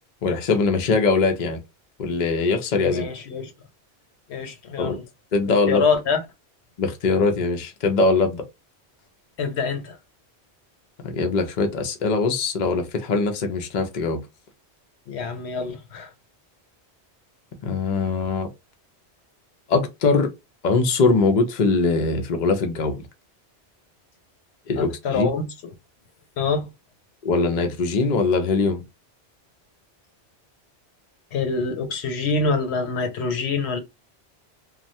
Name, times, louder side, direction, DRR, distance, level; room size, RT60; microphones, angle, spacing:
voice 1, 0.2-1.6 2.0-3.0 4.8-5.0 5.3-5.8 6.8-8.4 11.0-14.2 17.6-18.5 19.7-20.3 20.6-23.0 24.7-25.3 27.2-28.8, left 4 dB, 50° left, 0.7 m, -22 dB
voice 2, 2.8-3.5 4.3-5.0 5.7-6.2 9.4-10.0 15.1-16.1 24.8-25.5 26.4-26.7 31.3-33.8, left 4 dB, 75° left, 1.0 m, -25 dB
3.1 x 2.3 x 2.6 m
omnidirectional pair, 1.1 m